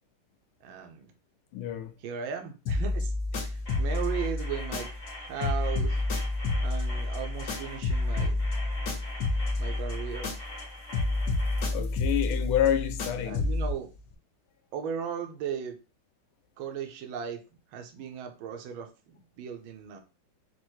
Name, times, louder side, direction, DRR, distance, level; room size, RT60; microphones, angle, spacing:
voice 1, 0.6-1.1 2.0-4.9 5.2-6.0 6.6-8.4 9.6-10.3 13.2-13.9 14.7-15.8 16.6-17.4 17.7-20.0, right 7 dB, 75° right, 1.5 m, -37 dB
voice 2, 1.5-1.9 11.7-13.5, left 10 dB, 80° left, 1.4 m, -28 dB
sound 1, 2.7-5.1 5.4-10.6 10.9-13.7, left 2 dB, 55° left, 1.4 m, -29 dB
sound 2, 3.7-11.7, left 1 dB, 30° left, 1.8 m, -44 dB
4.5 x 2.6 x 4.4 m
omnidirectional pair, 2.3 m